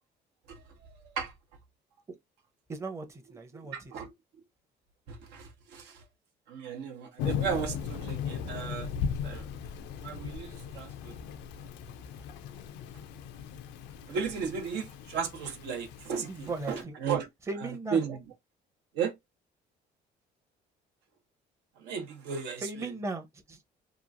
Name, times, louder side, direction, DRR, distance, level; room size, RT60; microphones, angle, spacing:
voice 1, 2.7-3.0 3.3-3.7 16.1-16.9 17.5-18.0 22.6-23.7, right 3 dB, 15° right, 0.6 m, -37 dB
voice 2, 3.6-4.1 5.1-6.0 6.5-8.9 9.2-9.5 10.0-11.1 14.1-17.3 17.6-18.2 18.9-19.1 21.8-22.9, right 6 dB, 90° right, 0.9 m, -35 dB
Thunder / Rain, 7.2-16.8, left 7 dB, 90° left, 0.4 m, -38 dB
2.9 x 2.4 x 2.5 m
cardioid pair, 110°, 17 cm